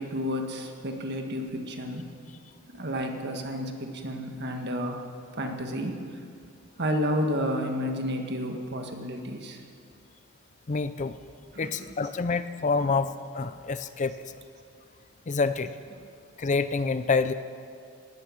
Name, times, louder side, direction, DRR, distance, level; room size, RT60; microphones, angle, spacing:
voice 1, 0.0-2.1 2.7-5.1 5.4-6.0 6.8-9.6 11.5-12.1 15.9-16.1, equal, 50° right, 4 dB, 1.7 m, -31 dB
voice 2, 10.7-11.2 11.6-14.1 15.3-15.7 16.4-17.3, left 4 dB, 35° left, 12 dB, 0.5 m, -27 dB
18.0 x 12.5 x 6.4 m, 2.3 s
head